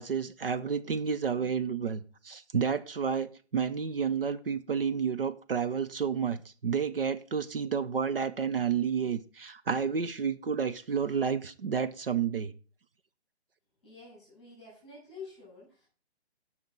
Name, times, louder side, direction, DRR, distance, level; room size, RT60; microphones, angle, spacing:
voice 1, 0.0-12.5, right 6 dB, 60° right, 0.7 m, -30 dB
voice 2, 13.8-15.9, left 4 dB, ahead, 6.8 m, -48 dB
18.0 x 6.0 x 3.9 m
hypercardioid pair, 180°, 33 cm